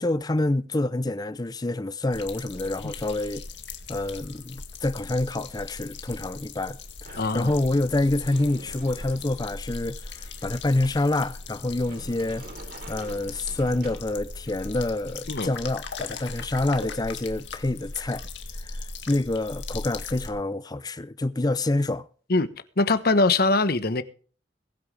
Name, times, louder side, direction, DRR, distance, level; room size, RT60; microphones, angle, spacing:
voice 1, 0.0-3.4 3.9-12.4 12.9-18.2 18.6-18.7 19.1-22.1, left 2 dB, 20° left, 0.6 m, -27 dB
sound 1, 2.1-20.3, left 3 dB, 80° left, 2.2 m, -39 dB
Sliding door, 7.0-14.5, right 2 dB, 60° right, 3.3 m, -48 dB
voice 2, 7.2-7.5 15.3-15.5 22.3-22.5 22.8-24.0, left 3 dB, 55° left, 1.1 m, -22 dB
22.5 x 8.9 x 3.4 m
head